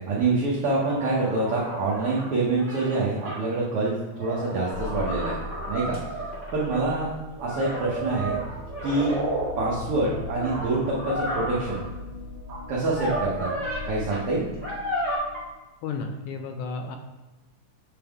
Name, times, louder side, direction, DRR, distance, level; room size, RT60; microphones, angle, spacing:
voice 1, 0.1-5.4 5.7-6.0 6.5-7.1 7.4-8.4 8.8-9.1 9.6-11.8 12.7-13.5 13.8-14.5, right 3 dB, 90° right, -5 dB, 1.2 m, -26 dB
sound 1, 0.7-3.4 4.1-6.8 7.4-9.5 10.1-11.8 12.8-13.8 14.1-14.2 14.6-15.2, right 1 dB, 20° right, 0.4 m, -33 dB
sound 2, 2.2-2.3 2.7-2.8 3.3-3.4 6.0-6.1 8.4-9.5 10.5-10.6 11.9-12.0 12.5-12.6 13.6-13.7 14.7-14.8 15.3-15.4, right 2 dB, 55° right, 2.1 m, -32 dB
sound 3, 4.7-15.5, left 2 dB, 65° left, 2.2 m, -39 dB
voice 2, 15.8-17.0, left 4 dB, 80° left, 5 dB, 1.9 m, -32 dB
8.2 x 3.5 x 3.4 m, 1.1 s
omnidirectional pair, 3.8 m